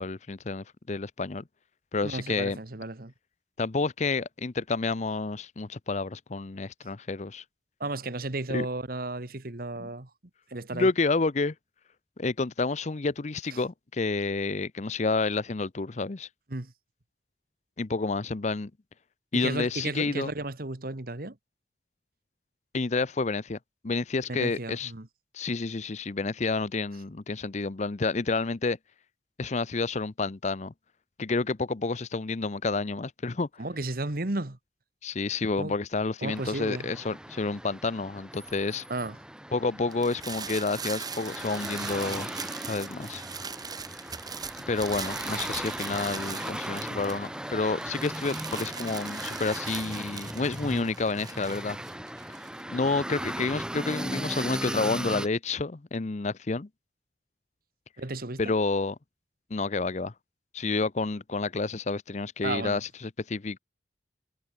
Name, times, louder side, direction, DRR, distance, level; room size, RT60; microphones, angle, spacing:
voice 1, 0.0-1.4 1.9-2.6 3.6-7.4 8.5-8.7 9.8-9.9 10.7-11.5 12.2-16.3 17.8-18.7 19.3-20.3 22.7-23.6 23.8-24.9 25.3-28.8 29.4-30.7 31.2-33.5 35.0-38.8 39.5-42.3 42.7-43.2 44.7-51.8 52.7-56.7 58.4-58.9 59.5-60.1 60.5-63.6, left 3 dB, 40° left, 0.7 m, -29 dB
voice 2, 2.0-3.1 7.8-10.1 10.5-10.9 13.5-13.6 16.5-16.7 19.3-21.4 24.3-25.1 33.6-34.6 35.6-35.7 36.2-36.9 38.9-39.2 49.6-49.8 58.0-58.5 62.4-62.8, right 2 dB, 55° right, 1.6 m, -34 dB
sound 1, 36.3-55.3, right 1 dB, 5° right, 2.8 m, -37 dB
sound 2, 39.9-47.5 47.8-52.6, right 6 dB, 20° right, 1.7 m, -40 dB
head